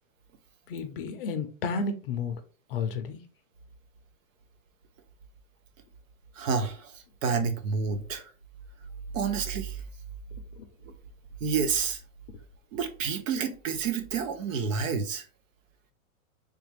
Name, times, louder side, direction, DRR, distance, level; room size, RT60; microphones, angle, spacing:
voice 1, 0.7-2.4 2.7-3.2, left 4 dB, 45° left, 0.5 m, -31 dB
voice 2, 6.4-8.3 9.1-9.8 10.9-11.0 11.4-12.0 12.7-15.3, right 6 dB, 70° right, 0.8 m, -29 dB
3.4 x 2.5 x 3.3 m
hypercardioid pair, 155°, 41 cm